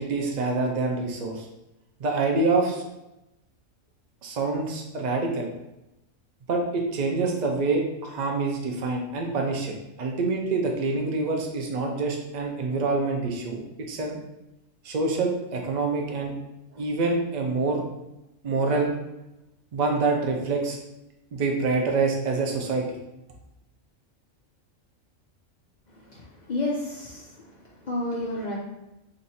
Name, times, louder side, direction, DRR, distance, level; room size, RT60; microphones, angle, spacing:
voice 1, 0.0-1.5 2.0-2.8 4.2-5.5 6.5-14.2 14.8-16.3 16.7-17.8 18.4-18.9 19.7-20.8 21.3-22.8, right 3 dB, 85° right, 1 dB, 0.3 m, -26 dB
voice 2, 26.0-27.5 27.8-28.6, left 2 dB, 50° left, -3 dB, 0.5 m, -31 dB
2.9 x 2.6 x 4.0 m, 0.93 s
omnidirectional pair, 1.4 m